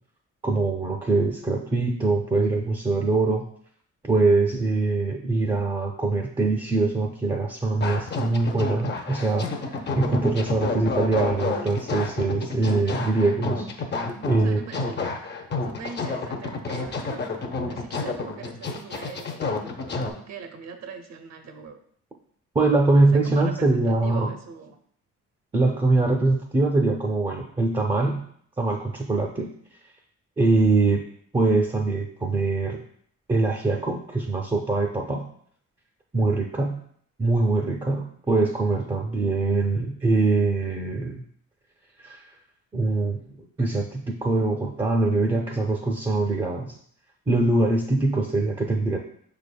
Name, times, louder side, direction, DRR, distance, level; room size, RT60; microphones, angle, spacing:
voice 1, 0.4-3.4 4.0-13.7 14.3-14.6 22.5-24.3 25.5-28.3 28.6-29.5 30.4-31.0 31.3-32.8 33.3-35.3 36.1-36.8 37.2-41.2 42.0-42.3 42.7-46.7 47.3-49.0, right 3 dB, 15° right, 1 dB, 0.5 m, -23 dB
sound 1, 7.8-20.1, left 3 dB, 35° left, 0.6 m, -30 dB
voice 2, 13.9-21.8 23.0-24.8, right 6 dB, 60° right, 6 dB, 0.7 m, -42 dB
5.9 x 3.5 x 2.2 m, 0.62 s
cardioid pair, 90°, 30 cm